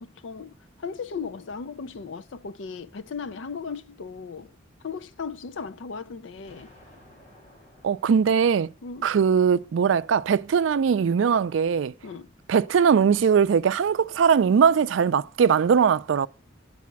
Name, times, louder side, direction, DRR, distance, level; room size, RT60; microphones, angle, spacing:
voice 1, 0.0-4.5 4.8-6.7 8.8-9.1 12.0-12.3, left 5 dB, 80° left, 0.5 m, -37 dB
Explosion, 6.4-9.4, left 1 dB, 40° left, 3.2 m, -55 dB
voice 2, 7.8-8.7 9.0-11.9 12.5-16.3, right 6 dB, 90° right, 0.4 m, -20 dB
8.4 x 4.2 x 5.8 m
head